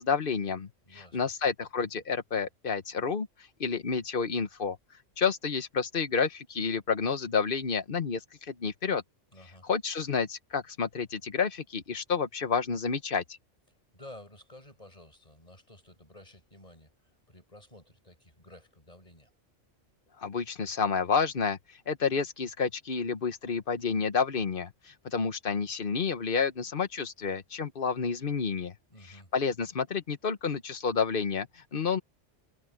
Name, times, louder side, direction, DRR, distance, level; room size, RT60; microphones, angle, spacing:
voice 1, 0.0-3.3 3.6-4.8 5.2-9.0 9.7-13.2 20.2-21.6 21.9-28.7 29.3-32.0, left 5 dB, 45° left, 1.2 m, -30 dB
voice 2, 0.8-1.3 9.3-9.7 13.9-19.3 28.9-29.3, left 1 dB, 30° left, 6.7 m, -52 dB
omnidirectional pair, 1.3 m